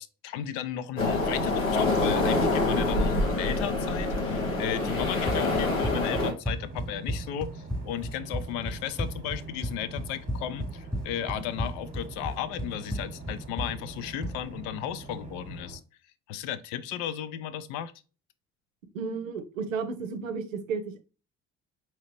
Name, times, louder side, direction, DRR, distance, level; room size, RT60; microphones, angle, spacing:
voice 1, 0.0-15.8 16.3-17.9, left 10 dB, 65° left, 0.5 m, -35 dB
sound 1, 1.0-6.3, left 2 dB, 90° left, 0.8 m, -26 dB
Run, 5.0-14.4, equal, ahead, 0.4 m, -34 dB
sound 2, 6.6-15.8, right 3 dB, 20° right, 1.0 m, -44 dB
voice 2, 18.9-21.0, right 5 dB, 80° right, 0.6 m, -33 dB
4.8 x 2.9 x 3.0 m
figure-of-eight pair, 45°, 39 cm